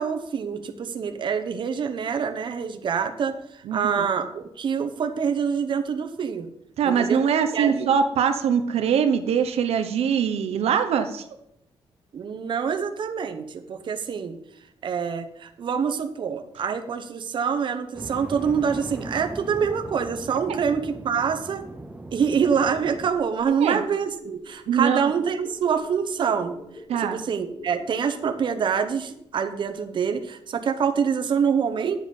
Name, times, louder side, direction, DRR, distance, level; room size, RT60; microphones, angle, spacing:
voice 1, 0.0-6.5 6.8-7.2 7.5-7.9 12.1-14.4 14.8-21.6 22.1-26.6 27.0-32.0, right 6 dB, 50° right, 7 dB, 0.9 m, -26 dB
voice 2, 3.7-4.1 6.8-11.2 20.5-20.6 23.6-23.8 24.7-25.0 26.9-27.2, right 7 dB, 80° right, 8 dB, 0.9 m, -23 dB
sound 1, 17.9-23.1, right 2 dB, 15° right, 0.7 m, -39 dB
sound 2, 22.6-29.4 29.7-29.8, left 1 dB, 50° left, 4.6 m, -46 dB
9.8 x 7.6 x 5.3 m, 0.77 s
wide cardioid pair, 140°, 10 cm